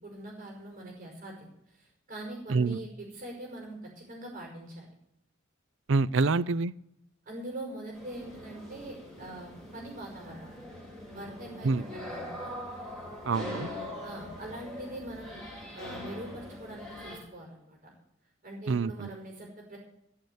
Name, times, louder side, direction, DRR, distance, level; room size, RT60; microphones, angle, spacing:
voice 1, 0.0-1.5 1.8-4.9 6.2-6.3 7.3-10.5 11.1-12.5 14.0-15.4 15.7-17.9 18.4-19.8, right 1 dB, 45° right, -1 dB, 5.4 m, -43 dB
voice 2, 5.9-6.7 11.6-11.8 13.3-13.7 18.7-19.1, right 4 dB, 65° right, 19 dB, 0.5 m, -26 dB
sound 1, 7.9-17.2, left 1 dB, ahead, 5.0 m, -42 dB
14.5 x 6.8 x 9.4 m, 0.81 s
head